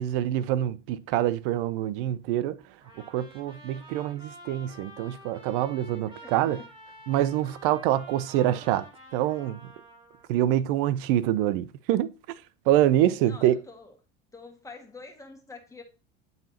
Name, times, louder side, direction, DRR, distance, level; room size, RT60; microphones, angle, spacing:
voice 1, 0.0-2.6 3.1-6.6 7.1-8.9 9.1-9.6 10.3-12.1 12.7-13.6, right 12 dB, 65° right, 0.5 m, -25 dB
Trumpet, 2.8-10.3, right 1 dB, 15° right, 2.0 m, -49 dB
voice 2, 6.2-6.7 13.3-13.9 14.3-15.8, left 3 dB, 10° left, 1.5 m, -46 dB
8.8 x 4.0 x 2.8 m
hypercardioid pair, 90°, 29 cm